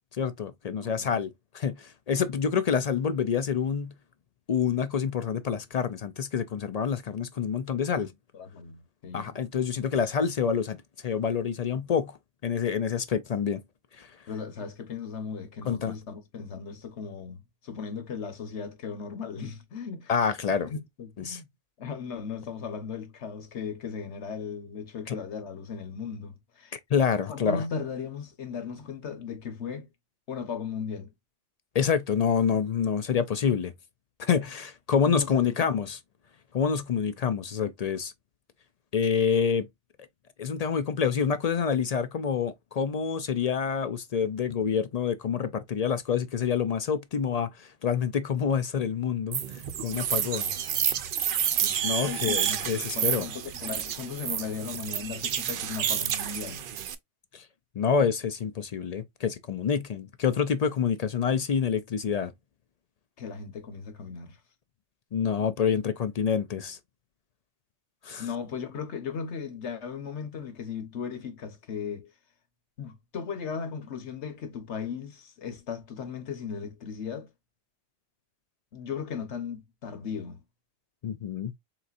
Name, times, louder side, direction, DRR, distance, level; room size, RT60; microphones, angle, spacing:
voice 1, 0.1-1.3 1.5-3.9 4.5-8.1 9.1-10.8 11.0-12.2 12.4-13.6 14.0-14.1 15.7-15.9 20.1-20.7 21.2-21.4 25.1-25.2 26.7-27.6 31.7-33.7 34.2-36.0 36.5-38.1 38.9-39.7 40.4-50.5 51.8-53.3 57.3-57.4 57.8-62.3 65.1-66.8 68.0-68.3 81.0-81.5, left 7 dB, 55° left, 0.4 m, -27 dB
voice 2, 0.8-1.2 8.0-8.1 8.3-9.3 10.2-10.3 14.3-20.1 20.6-21.5 21.8-26.8 27.2-29.9 30.3-31.1 35.1-35.6 51.6-51.8 52.0-56.6 63.2-64.4 68.2-72.1 72.8-77.3 78.7-80.4, left 6 dB, 80° left, 1.4 m, -37 dB
sound 1, 49.3-56.9, right 9 dB, 60° right, 0.7 m, -29 dB
4.4 x 3.9 x 2.4 m
omnidirectional pair, 1.1 m